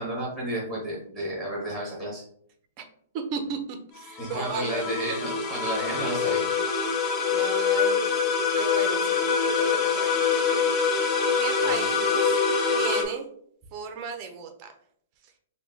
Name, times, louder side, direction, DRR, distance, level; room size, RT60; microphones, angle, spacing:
voice 1, 0.0-2.2 4.2-6.5 11.6-11.9, right 1 dB, ahead, -4 dB, 1.2 m, -32 dB
voice 2, 3.1-4.9 7.3-8.1 8.5-9.2 9.5-10.3 11.3-12.4 12.8-13.3 13.7-14.7, right 5 dB, 30° right, 5 dB, 0.5 m, -35 dB
sound 1, 4.0-13.0, left 5 dB, 25° left, 0.5 m, -25 dB
4.8 x 2.2 x 2.7 m, 0.63 s
hypercardioid pair, 160°, 0 cm